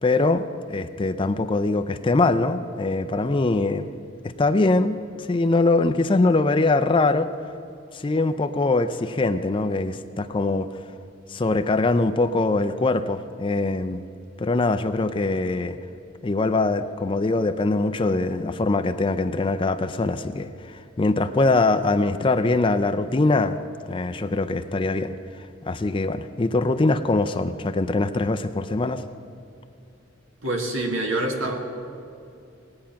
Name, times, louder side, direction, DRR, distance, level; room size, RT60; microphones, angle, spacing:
voice 1, 0.0-3.9 4.4-7.3 7.9-10.7 11.3-14.0 14.4-15.8 16.2-23.6 23.9-25.1 25.7-29.0, left 3 dB, 25° left, 9 dB, 0.4 m, -22 dB
voice 2, 30.4-31.5, right 2 dB, 75° right, 2 dB, 1.8 m, -26 dB
19.0 x 8.7 x 5.8 m, 2.6 s
head